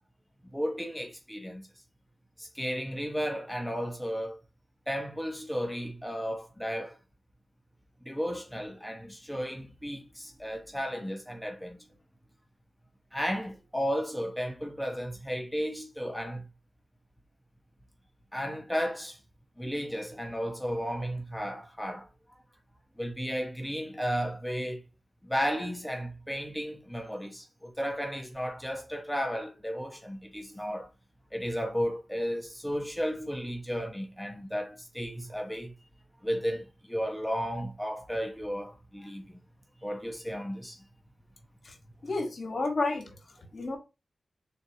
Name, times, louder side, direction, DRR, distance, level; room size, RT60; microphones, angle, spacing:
voice 1, 0.5-1.6 2.4-4.4 4.9-7.0 8.0-11.9 13.1-16.4 18.3-19.2 19.6-22.1 23.0-24.8 25.2-30.9 31.3-35.7 36.2-39.4 39.8-40.8, equal, 5° left, 1.0 m, -34 dB
voice 2, 42.0-43.0 43.5-43.8, left 3 dB, 65° left, 1.6 m, -30 dB
4.0 x 3.2 x 2.9 m
cardioid pair, 45°, 0 cm